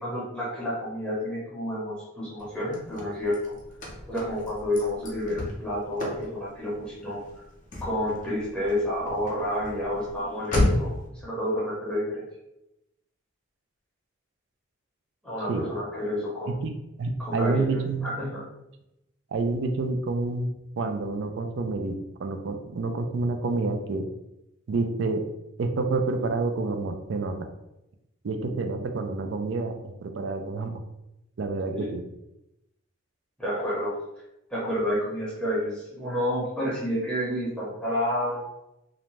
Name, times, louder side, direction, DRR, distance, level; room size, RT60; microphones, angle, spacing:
voice 1, 0.0-3.6 4.1-7.4 7.8-12.3 15.2-16.6 17.2-18.5 31.7-31.9 33.4-34.0 34.5-38.4, equal, 5° left, -7 dB, 0.7 m, -30 dB
Car / Slam, 2.4-11.1, left 1 dB, 40° left, 0.5 m, -33 dB
voice 2, 17.0-18.1 19.3-20.5 20.8-24.1 24.7-25.3 25.6-27.5 28.2-30.8 31.4-32.0, right 3 dB, 60° right, 6 dB, 0.3 m, -28 dB
2.5 x 2.1 x 3.1 m, 0.89 s
head